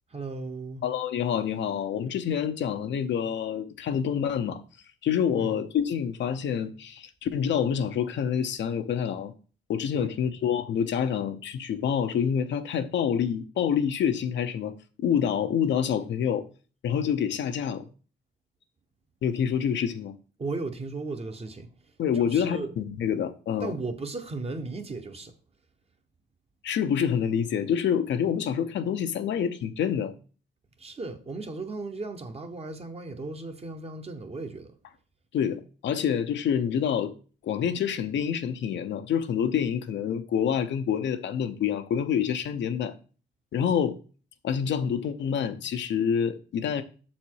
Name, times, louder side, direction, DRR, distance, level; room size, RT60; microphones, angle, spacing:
voice 1, 0.1-0.8 5.3-5.6 9.9-10.1 20.4-22.7 23.6-25.3 30.8-34.7, right 3 dB, 30° right, 1.0 m, -36 dB
voice 2, 0.8-4.6 5.0-9.3 9.7-16.4 16.8-17.9 19.2-20.1 22.0-23.7 26.6-30.1 35.3-37.1 37.4-42.9 43.5-44.0 44.4-46.8, left 8 dB, 65° left, 0.7 m, -27 dB
6.5 x 4.3 x 4.6 m
cardioid pair, 90°, 20 cm